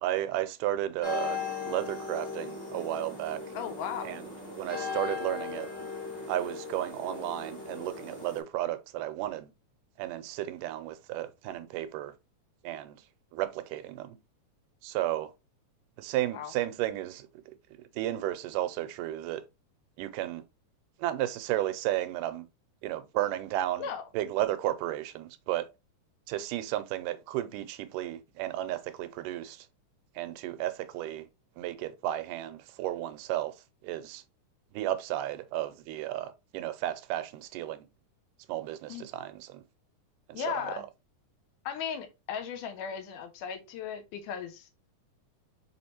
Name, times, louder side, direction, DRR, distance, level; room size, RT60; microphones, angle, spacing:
voice 1, 0.0-1.4 1.7-3.4 4.0-4.2 4.5-5.7 6.3-9.5 10.0-12.1 12.6-13.0 13.3-14.1 14.8-15.3 16.0-17.3 17.9-19.4 20.0-20.4 21.0-22.4 22.8-23.9 24.1-25.7 26.3-29.7 30.2-31.3 31.6-33.6 33.8-34.2 34.7-37.9 38.5-39.6 40.3-40.8, right 14 dB, 90° right, 2.2 m, -33 dB
sound 1, 1.0-8.4, left 5 dB, 25° left, 1.1 m, -38 dB
voice 2, 3.6-4.2 16.3-16.5 23.8-24.0 38.9-39.1 40.3-40.8 41.7-44.7, left 8 dB, 85° left, 2.1 m, -36 dB
4.7 x 3.5 x 2.8 m
omnidirectional pair, 3.7 m